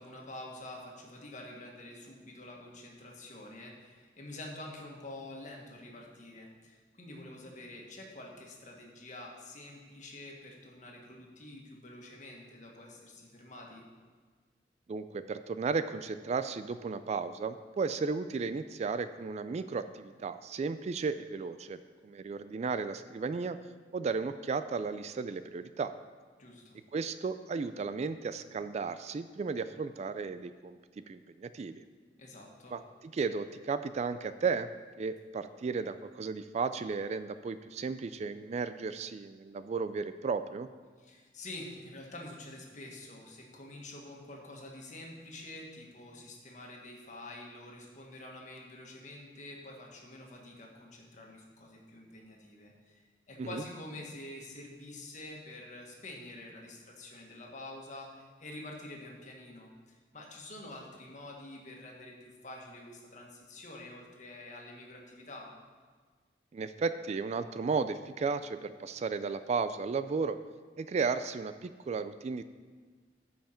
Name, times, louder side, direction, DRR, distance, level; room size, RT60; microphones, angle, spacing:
voice 1, 0.0-13.8 26.4-26.8 32.2-32.8 41.0-65.5, left 1 dB, 45° left, 0 dB, 1.6 m, -47 dB
voice 2, 14.9-23.6 23.9-25.9 26.9-31.7 32.7-32.8 33.1-34.7 35.0-40.7 53.4-53.6 66.5-70.4 70.8-72.4, right 4 dB, 40° right, 12 dB, 0.3 m, -34 dB
14.0 x 5.6 x 4.4 m, 1.5 s
head